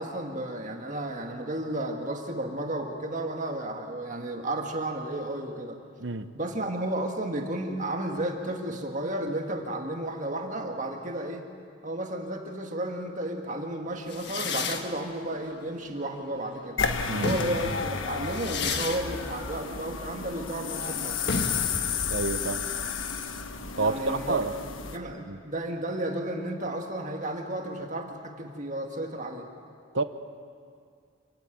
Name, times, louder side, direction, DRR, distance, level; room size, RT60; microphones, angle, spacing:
voice 1, 0.0-5.8 6.3-11.4 11.8-16.8 17.2-21.4 23.8-24.4 24.9-29.5, right 1 dB, 40° right, 3 dB, 1.7 m, -33 dB
sound 1, 14.1-16.6 17.0-24.5, left 4 dB, 55° left, 1.5 m, -35 dB
sound 2, 16.8-25.0, left 6 dB, 75° left, 1.3 m, -32 dB
voice 2, 22.1-22.7 23.8-24.5 25.3-25.4 29.9-30.0, right 3 dB, 60° right, 10 dB, 1.0 m, -29 dB
26.5 x 16.0 x 9.1 m, 2.3 s
head